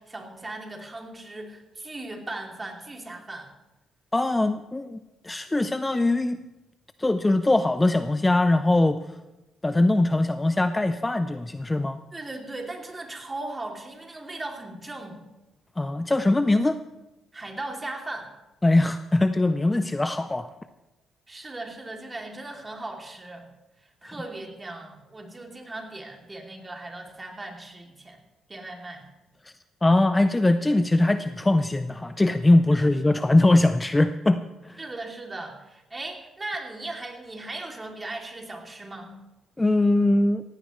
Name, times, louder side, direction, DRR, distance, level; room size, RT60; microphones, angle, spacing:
voice 1, 0.0-3.5 12.1-15.2 17.3-18.3 21.3-23.5 23.8-28.2 28.5-29.1 32.7-33.2 34.8-39.1, right 2 dB, 20° right, 1 dB, 2.7 m, -38 dB
voice 2, 4.1-6.4 7.0-9.0 9.6-12.0 15.8-16.8 18.6-20.5 24.0-24.2 29.8-34.8 39.6-40.4, left 2 dB, 15° left, 10 dB, 0.5 m, -21 dB
17.0 x 16.0 x 3.2 m, 1.0 s
cardioid pair, 90°, 0 cm